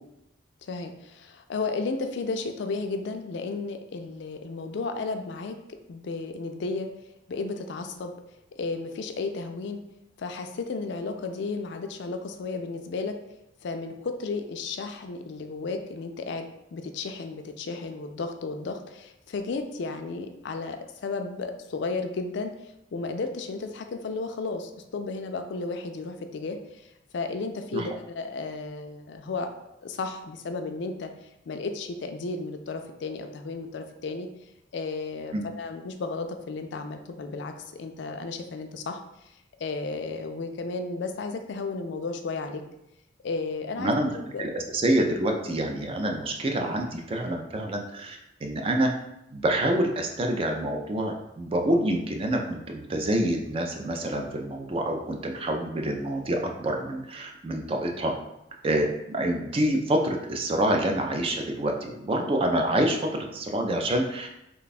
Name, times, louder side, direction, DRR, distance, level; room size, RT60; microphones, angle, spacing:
voice 1, 0.6-5.6 5.9-6.9 7.3-8.1 8.6-9.8 10.2-13.2 13.6-29.5 29.8-34.3 34.7-39.3 39.6-42.6 43.2-43.9 44.3-44.5, left 3 dB, 60° left, 6 dB, 0.3 m, -33 dB
voice 2, 43.8-44.1 44.4-48.9 49.3-58.1 58.6-64.3, right 1 dB, 30° right, 3 dB, 0.3 m, -27 dB
3.3 x 2.2 x 4.0 m, 0.86 s
head